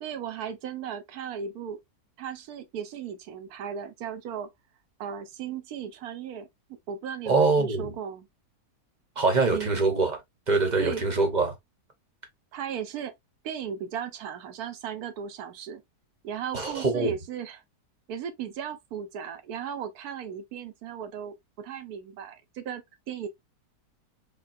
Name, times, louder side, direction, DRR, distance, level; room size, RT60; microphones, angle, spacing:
voice 1, 0.0-1.8 2.2-4.5 5.0-8.3 9.5-9.9 10.8-11.0 12.5-13.1 13.4-15.8 16.2-17.6 18.1-23.3, right 8 dB, 70° right, 1.2 m, -36 dB
voice 2, 7.3-7.9 9.2-10.2 10.5-11.5 16.5-17.1, right 3 dB, 35° right, 0.9 m, -24 dB
5.7 x 2.3 x 2.5 m
omnidirectional pair, 1.7 m